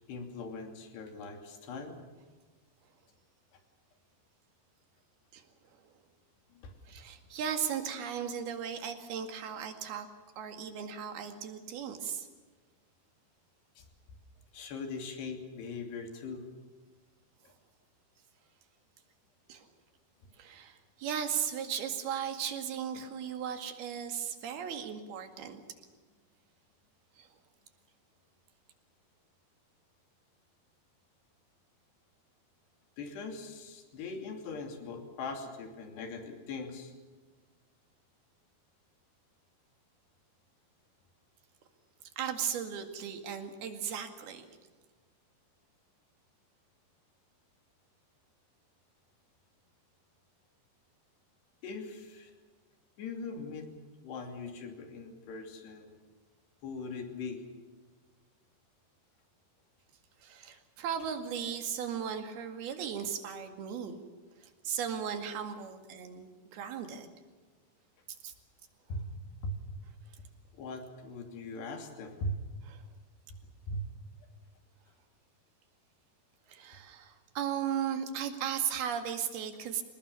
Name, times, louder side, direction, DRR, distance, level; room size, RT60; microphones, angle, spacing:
voice 1, 0.1-2.0 3.5-3.6 6.5-7.0 13.8-13.9 14.5-16.5 17.4-17.5 33.0-36.9 51.6-52.3 53.0-53.7 54.0-56.0 56.6-57.4 68.9-69.8 70.2-70.3 70.5-72.6 73.7-73.8, left 2 dB, 80° left, 4 dB, 5.0 m, -40 dB
voice 2, 6.9-10.1 10.4-12.3 19.5-19.7 20.4-25.6 27.2-27.3 42.2-44.4 60.2-64.0 64.4-67.1 68.2-68.3 72.7-72.8 76.5-79.8, right 8 dB, 70° right, 6 dB, 4.0 m, -36 dB
26.5 x 20.0 x 7.1 m, 1.4 s
omnidirectional pair, 4.8 m